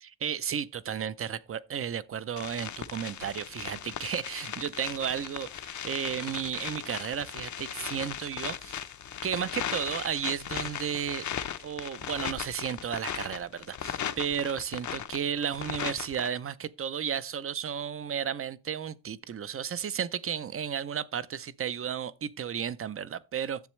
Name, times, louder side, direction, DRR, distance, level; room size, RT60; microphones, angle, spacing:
voice 1, 0.0-8.8 9.2-11.3 11.6-23.7, right 8 dB, 35° right, 0.4 m, -33 dB
sound 1, 2.4-16.3, left 9 dB, 50° left, 0.6 m, -37 dB
10.5 x 7.7 x 3.1 m
wide cardioid pair, 165°, 39 cm